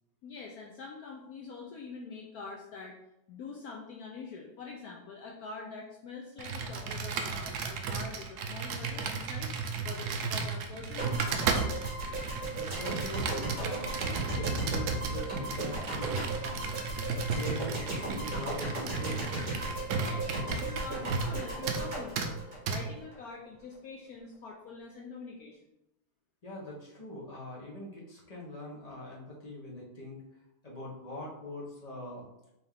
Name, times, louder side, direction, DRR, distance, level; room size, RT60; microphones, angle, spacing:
voice 1, 0.2-3.0 3.3-9.5 9.8-11.5 20.0-25.7, left 4 dB, 85° left, -1 dB, 0.8 m, -45 dB
Computer keyboard, 6.4-21.4 21.7-21.8 22.2-22.3 22.7-22.8, right 5 dB, 80° right, 0.9 m, -35 dB
sound 1, 11.0-23.2, right 2 dB, 60° right, 2.2 m, -35 dB
voice 2, 12.5-16.6 17.1-19.5 26.4-30.2 30.6-32.3, left 1 dB, 40° left, -4 dB, 0.5 m, -43 dB
4.2 x 3.5 x 3.6 m, 0.86 s
omnidirectional pair, 2.2 m